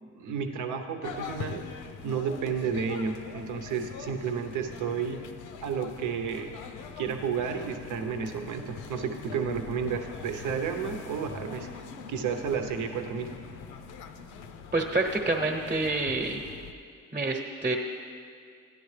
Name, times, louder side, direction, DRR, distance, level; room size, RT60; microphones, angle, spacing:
voice 1, 0.0-1.6 2.0-5.2 5.6-6.5 7.0-11.7 12.1-13.3, right 6 dB, 80° right, 6 dB, 0.9 m, -31 dB
sound 1, 1.0-16.7, left 6 dB, 85° left, 0.6 m, -43 dB
voice 2, 14.7-16.4 17.1-17.8, right 2 dB, 25° right, 1 dB, 1.0 m, -27 dB
13.5 x 10.5 x 3.3 m, 2.3 s
cardioid pair, 90°, 30 cm